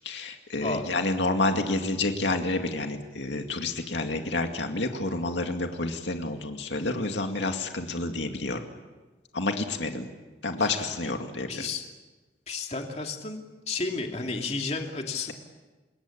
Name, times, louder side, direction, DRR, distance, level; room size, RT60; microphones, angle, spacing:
voice 1, 0.0-8.6 9.3-10.1 10.4-11.6, left 2 dB, 85° left, 4 dB, 2.3 m, -29 dB
voice 2, 10.6-10.9 11.5-11.9 12.5-13.4 13.7-15.3, left 3 dB, 35° left, 2 dB, 2.7 m, -32 dB
27.5 x 22.0 x 8.6 m, 1.2 s
head